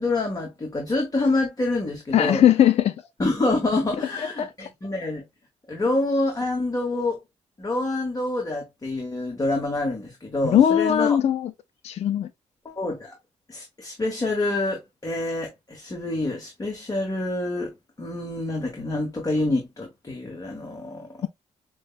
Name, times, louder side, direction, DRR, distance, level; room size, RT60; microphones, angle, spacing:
voice 1, 0.0-2.4 3.2-5.2 5.7-7.2 7.6-11.2 12.6-13.1 13.5-17.7 18.0-21.2, left 2 dB, 30° left, 1.2 m, -27 dB
voice 2, 2.1-2.9 4.2-4.5 10.5-11.5 11.8-12.3, left 10 dB, 55° left, 0.4 m, -19 dB
6.1 x 2.2 x 2.4 m
cardioid pair, 70°, 13 cm